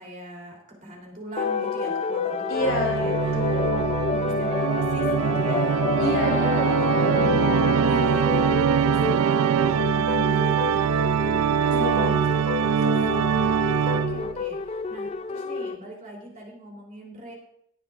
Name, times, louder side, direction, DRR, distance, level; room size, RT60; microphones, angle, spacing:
voice 1, 0.0-3.7 4.2-5.8 6.6-7.4 7.8-12.9 13.7-17.3, right 1 dB, 35° right, -1 dB, 3.3 m, -41 dB
sound 1, 1.4-15.8, left 5 dB, 30° left, 0.4 m, -29 dB
voice 2, 2.5-4.6 6.0-8.6 11.7-12.4 12.8-13.3, left 1 dB, 65° left, -1 dB, 3.7 m, -31 dB
Organ, 2.6-14.4, right 8 dB, 90° right, 0.4 m, -23 dB
18.5 x 8.6 x 2.5 m, 0.72 s
head